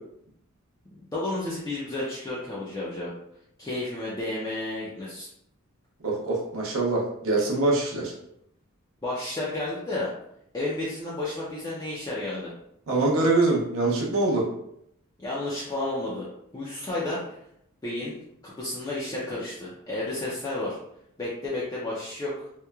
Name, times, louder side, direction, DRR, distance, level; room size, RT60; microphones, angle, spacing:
voice 1, 1.1-3.1 3.6-5.3 9.0-10.1 10.5-12.5 15.2-16.3 16.5-17.2 17.8-18.2 18.4-20.8 21.2-22.5, left 2 dB, 15° left, -7 dB, 0.4 m, -31 dB
voice 2, 6.0-8.1 12.9-14.4, right 2 dB, 65° right, -2 dB, 0.6 m, -24 dB
2.9 x 2.1 x 2.3 m, 0.75 s
head